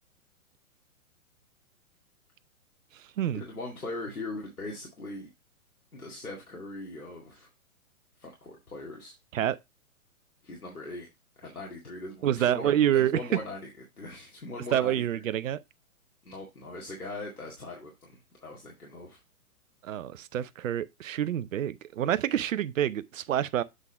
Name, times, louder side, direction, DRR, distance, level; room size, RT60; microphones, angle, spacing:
voice 1, 3.3-5.3 5.9-7.5 8.2-9.2 10.4-11.1 11.4-13.7 14.0-15.2 16.2-19.2, left 2 dB, 90° left, 2.2 m, -40 dB
voice 2, 12.2-13.2 14.7-15.6 19.8-23.6, right 11 dB, 65° right, 0.7 m, -27 dB
8.1 x 3.8 x 4.4 m
figure-of-eight pair, 120°, 43 cm